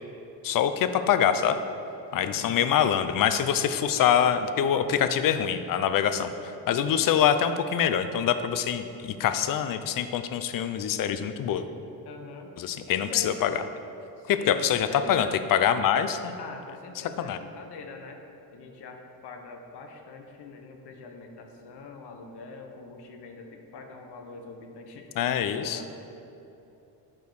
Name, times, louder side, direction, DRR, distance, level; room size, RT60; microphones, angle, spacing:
voice 1, 0.4-1.6 2.1-11.6 12.6-13.6 14.3-16.4 17.2-17.4 25.2-25.8, left 9 dB, 55° left, 11 dB, 0.6 m, -25 dB
voice 2, 2.2-2.6 12.0-12.5 12.9-13.3 14.2-15.4 16.4-18.2 18.5-25.1 25.4-25.9, left 4 dB, 80° left, 4 dB, 1.1 m, -43 dB
8.4 x 4.5 x 6.3 m, 2.9 s
cardioid pair, 110°, 39 cm